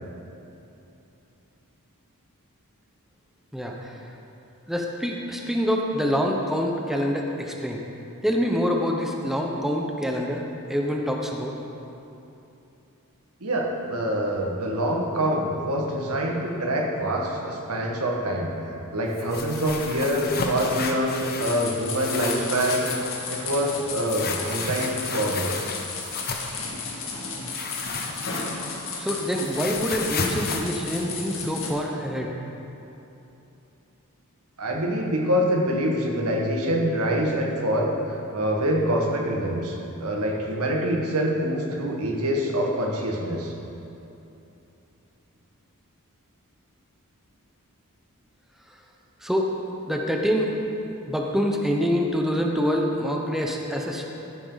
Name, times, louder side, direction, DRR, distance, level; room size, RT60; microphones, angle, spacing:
voice 1, 3.5-4.0 4.7-7.8 8.2-10.4 10.7-11.5 29.0-32.3 49.2-49.5 49.9-50.5 51.1-54.0, equal, ahead, 0 dB, 0.8 m, -26 dB
voice 2, 13.4-22.9 23.3-25.6 34.6-37.9 38.3-43.5, equal, 80° right, -1 dB, 1.6 m, -25 dB
sound 1, 19.1-21.6 21.9-23.1 24.1-26.6 27.5-28.8 29.1-31.7, left 4 dB, 45° left, 1.0 m, -32 dB
sound 2, 21.4-31.7, left 4 dB, 60° left, 1.9 m, -34 dB
15.0 x 9.3 x 4.0 m, 2.9 s
head